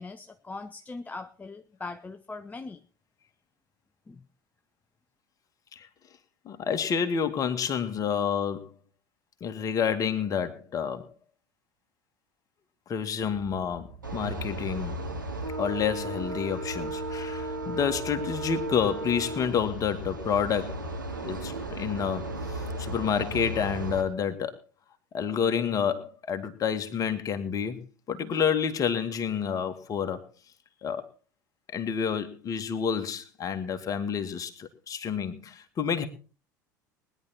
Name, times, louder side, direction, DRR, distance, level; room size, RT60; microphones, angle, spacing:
voice 1, 0.0-2.8 4.1-4.2, left 3 dB, 15° left, 0.7 m, -40 dB
voice 2, 6.5-8.7 9.4-11.1 12.9-15.0 15.6-20.8 21.2-24.5 25.1-27.8 28.1-30.2 30.8-31.1 31.7-36.1, left 7 dB, 35° left, 2.1 m, -29 dB
sound 1, 13.2-24.1, right 6 dB, 70° right, 5.4 m, -49 dB
sound 2, 14.0-24.0, right 2 dB, 85° right, 2.1 m, -35 dB
20.5 x 10.5 x 4.4 m
figure-of-eight pair, 70°, 10 cm